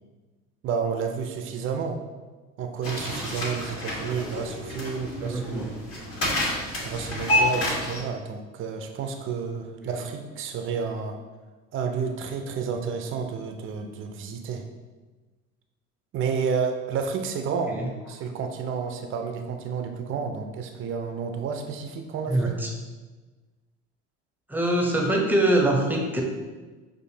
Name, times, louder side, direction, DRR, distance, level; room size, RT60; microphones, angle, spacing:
voice 1, 0.6-2.0 2.6-5.7 6.8-11.2 11.7-14.6 16.1-17.8 18.1-22.6, right 6 dB, 35° right, 5 dB, 0.6 m, -30 dB
sound 1, 2.8-8.0, left 1 dB, 35° left, 1.5 m, -28 dB
voice 2, 5.2-5.7 9.8-10.0 17.7-17.9 22.3-22.7 24.5-26.2, right 1 dB, 5° right, 0 dB, 0.8 m, -24 dB
6.4 x 2.6 x 2.7 m, 1.3 s
figure-of-eight pair, 65°, 38 cm